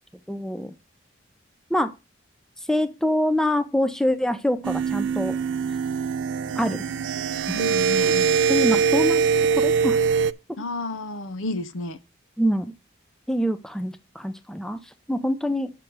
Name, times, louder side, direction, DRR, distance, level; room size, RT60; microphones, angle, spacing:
voice 1, 0.3-0.7 1.7-1.9 2.7-5.4 6.6-6.8 8.5-9.2 9.6-10.0 12.4-12.7 13.3-15.7, equal, 5° left, 0.4 m, -25 dB
sound 1, 4.6-10.3, right 6 dB, 70° right, 0.3 m, -22 dB
voice 2, 7.5-8.4 10.6-12.0, left 2 dB, 90° left, 0.7 m, -31 dB
6.6 x 6.0 x 4.6 m
head